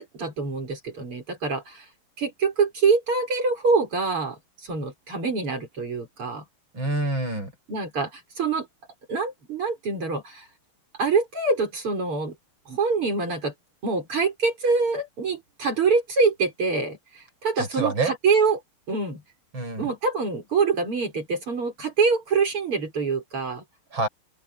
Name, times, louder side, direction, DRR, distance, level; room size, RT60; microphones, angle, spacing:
voice 1, 0.0-1.9 2.2-6.4 7.7-8.7 9.1-10.5 11.0-12.3 12.7-13.5 13.8-18.6 18.9-19.2 19.8-23.6, right 4 dB, 75° right, 6.7 m, -25 dB
voice 2, 6.7-7.5 17.6-18.1 19.5-19.9 23.9-24.1, right 2 dB, 60° right, 7.5 m, -27 dB
open air
omnidirectional pair, 2.4 m